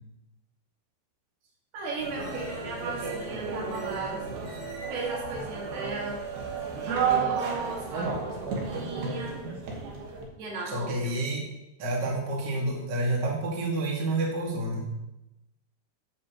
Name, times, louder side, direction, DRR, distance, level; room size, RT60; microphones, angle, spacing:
voice 1, 1.7-4.2 4.9-6.3 6.9-9.4 10.4-11.2, right 3 dB, 75° right, -2 dB, 4.1 m, -36 dB
sound 1, 2.0-10.3, right 5 dB, 60° right, 2.7 m, -32 dB
voice 2, 10.7-11.4 11.8-14.9, right 2 dB, 35° right, -2 dB, 1.8 m, -29 dB
12.5 x 8.1 x 3.1 m, 0.91 s
omnidirectional pair, 4.6 m